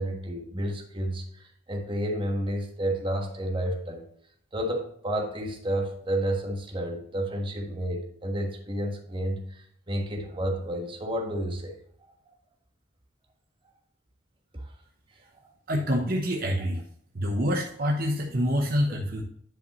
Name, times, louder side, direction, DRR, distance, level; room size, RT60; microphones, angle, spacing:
voice 1, 0.0-4.1 4.5-11.8 14.5-14.7, right 1 dB, 25° right, 1 dB, 1.4 m, -31 dB
voice 2, 15.7-16.8 17.1-19.2, equal, 50° right, 1 dB, 0.9 m, -26 dB
10.0 x 5.4 x 3.0 m, 0.66 s
head